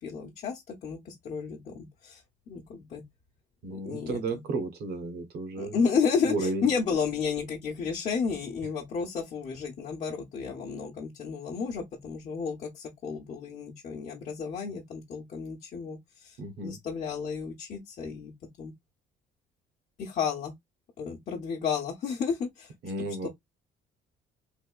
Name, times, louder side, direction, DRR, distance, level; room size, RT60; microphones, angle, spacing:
voice 1, 0.0-2.2 2.5-3.0 3.7-4.4 5.6-16.4 16.6-18.3 18.6-18.7 20.0-20.5 21.0-22.7 23.2-23.3, left 6 dB, 50° left, 0.9 m, -32 dB
voice 2, 3.6-5.8 6.3-6.7 16.4-16.8 22.8-23.3, right 3 dB, 70° right, 1.1 m, -33 dB
3.4 x 2.7 x 2.3 m
cardioid pair, 110°, 17 cm